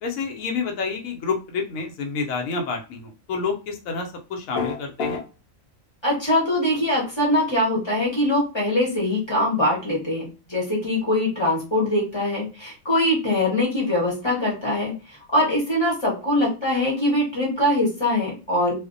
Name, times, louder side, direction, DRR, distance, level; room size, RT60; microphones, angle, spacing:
voice 1, 0.0-5.2, left 4 dB, 85° left, 3 dB, 1.0 m, -29 dB
sound 1, 4.5-5.2, left 5 dB, 60° left, 0.6 m, -26 dB
voice 2, 6.0-18.8, left 1 dB, 25° left, -4 dB, 0.7 m, -22 dB
2.5 x 2.0 x 2.5 m, 0.32 s
omnidirectional pair, 1.4 m